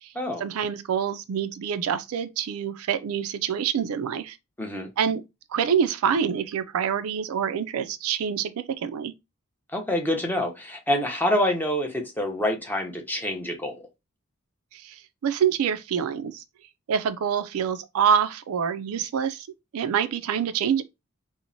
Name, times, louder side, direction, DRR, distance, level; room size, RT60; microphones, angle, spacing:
voice 1, 0.4-4.4 5.0-5.2 5.5-9.1 14.7-16.4 16.9-19.5 19.7-20.8, right 7 dB, 80° right, 0.4 m, -26 dB
voice 2, 9.7-13.8, left 1 dB, 10° left, 0.6 m, -26 dB
2.9 x 2.0 x 2.5 m
head